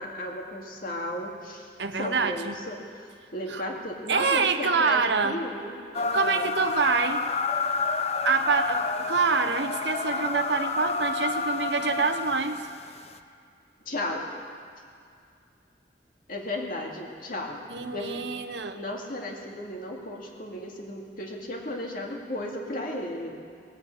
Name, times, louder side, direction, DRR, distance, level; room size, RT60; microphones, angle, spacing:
voice 1, 0.0-1.7 2.0-2.8 3.3-6.5 13.9-14.3 16.3-18.1 18.7-23.4, left 1 dB, 50° left, 0 dB, 2.1 m, -34 dB
voice 2, 1.8-2.6 3.5-3.6 4.1-5.4 6.1-7.2 8.2-12.6 17.7-18.8, right 5 dB, 80° right, 8 dB, 0.9 m, -26 dB
sound 1, 5.9-13.2, left 4 dB, 35° left, 0.5 m, -29 dB
18.5 x 8.5 x 8.0 m, 2.4 s
head